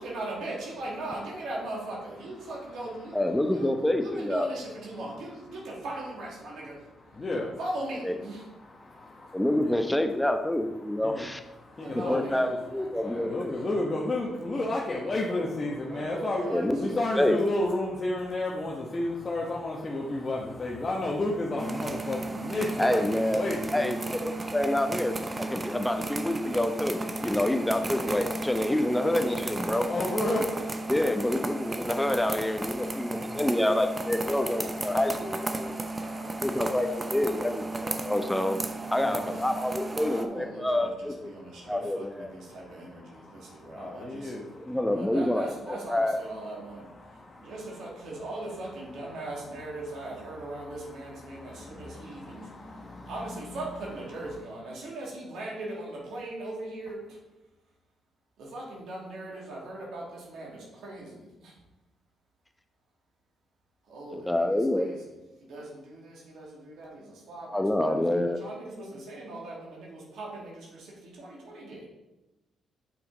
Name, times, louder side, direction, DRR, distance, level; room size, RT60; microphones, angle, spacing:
voice 1, 0.0-3.7 4.0-6.8 7.6-8.4 11.8-13.4 14.5-14.6 15.8-16.7 16.9-17.0 36.0-36.3 39.2-44.3 44.9-46.9 47.4-52.5 53.1-57.2 58.4-61.5 63.9-65.0 65.4-71.9, right 1 dB, 75° right, -3 dB, 2.4 m, -39 dB
voice 2, 3.1-4.5 8.0-8.1 9.3-11.4 11.9-13.6 16.5-17.4 22.8-23.4 23.7-29.9 30.9-35.7 36.4-38.6 38.9-41.3 41.7-42.3 44.6-46.2 64.1-64.9 67.5-68.4, left 1 dB, 10° left, 6 dB, 0.9 m, -27 dB
voice 3, 7.1-7.6 8.4-9.7 11.0-11.3 11.6-12.6 13.0-16.5 16.8-24.0 24.3-24.4 29.9-30.9 31.6-32.1 32.8-33.4 35.5-36.6 38.0-38.1 38.9-39.6 41.4-41.7 42.4-44.8 46.4-47.6 48.9-49.3 49.6-53.8 54.1-54.4, left 2 dB, 35° left, -3 dB, 1.2 m, -33 dB
sound 1, 21.6-40.3, right 2 dB, 30° right, 0.8 m, -34 dB
7.3 x 5.7 x 3.9 m, 1.0 s
supercardioid pair, 55°, 0 cm